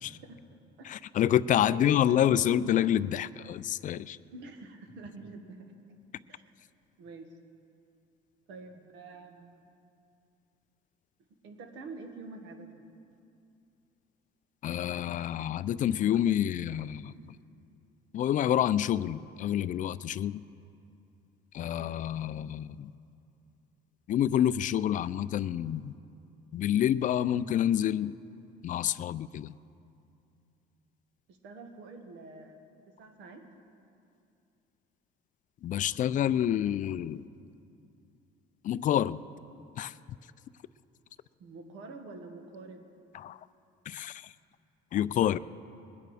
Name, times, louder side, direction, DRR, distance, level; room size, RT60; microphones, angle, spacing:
voice 1, 0.2-1.1 1.6-2.3 4.3-5.7 6.3-6.4 7.0-7.3 8.5-9.6 11.3-12.9 31.3-32.6 32.9-33.5 41.4-42.9, right 3 dB, 75° right, 5 dB, 1.5 m, -47 dB
voice 2, 0.9-4.2 14.6-17.3 18.1-20.4 21.5-22.9 24.1-25.9 26.5-28.1 28.6-29.5 35.6-37.2 38.6-39.2 39.8-39.9 43.1-43.4 43.9-44.3 44.9-45.4, left 10 dB, 45° left, 16 dB, 0.4 m, -28 dB
21.5 x 9.1 x 4.9 m, 2.6 s
cardioid pair, 110°, 19 cm